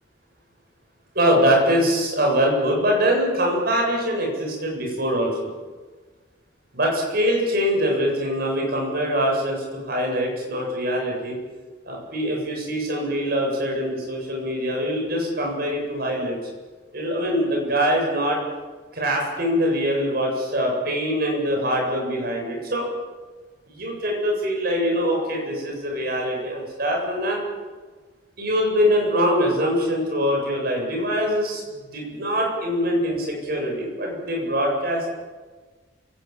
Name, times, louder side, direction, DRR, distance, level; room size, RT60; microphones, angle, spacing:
voice 1, 1.1-5.4 6.7-11.4 11.9-16.4 16.9-18.4 18.9-22.9 23.7-27.4 28.4-35.1, equal, 50° right, 0 dB, 7.9 m, -23 dB
28.0 x 18.0 x 7.4 m, 1.4 s
head